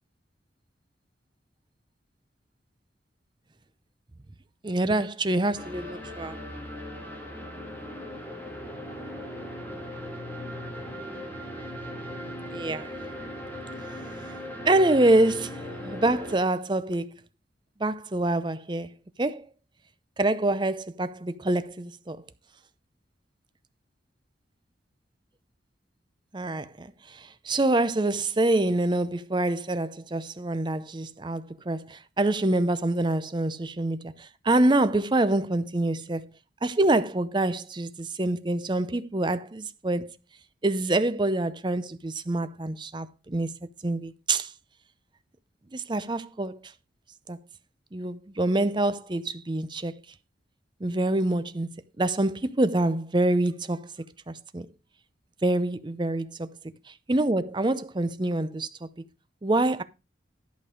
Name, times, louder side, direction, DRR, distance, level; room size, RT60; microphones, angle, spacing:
voice 1, 4.6-6.4 12.5-12.9 14.6-17.2 17.8-19.5 20.2-22.2 26.3-36.3 36.6-40.1 40.6-43.6 43.8-44.5 45.7-46.5 47.3-47.4 47.9-50.0 50.8-53.9 54.3-54.7 55.4-56.6 56.9-58.9 59.4-59.8, right 2 dB, 25° right, 0.6 m, -26 dB
sound 1, 5.6-16.4, equal, 10° left, 1.8 m, -38 dB
11.0 x 5.2 x 5.1 m
head